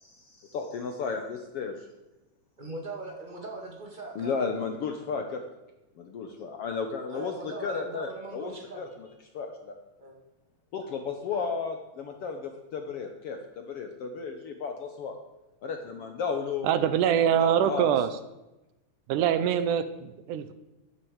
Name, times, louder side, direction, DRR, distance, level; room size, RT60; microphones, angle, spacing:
voice 1, 0.4-1.8 4.1-5.4 6.0-8.5 8.8-8.9 9.3-9.7 10.7-15.1 15.6-16.7 17.4-17.9, left 5 dB, 65° left, 5 dB, 1.6 m, -33 dB
voice 2, 2.6-4.3 7.1-8.8 10.0-10.2 11.3-11.5 16.9-17.2 17.7-18.1, right 2 dB, 15° right, 0 dB, 1.9 m, -41 dB
voice 3, 16.6-18.1 19.1-20.5, right 9 dB, 80° right, 12 dB, 2.3 m, -24 dB
11.0 x 9.9 x 8.0 m, 1.0 s
omnidirectional pair, 3.7 m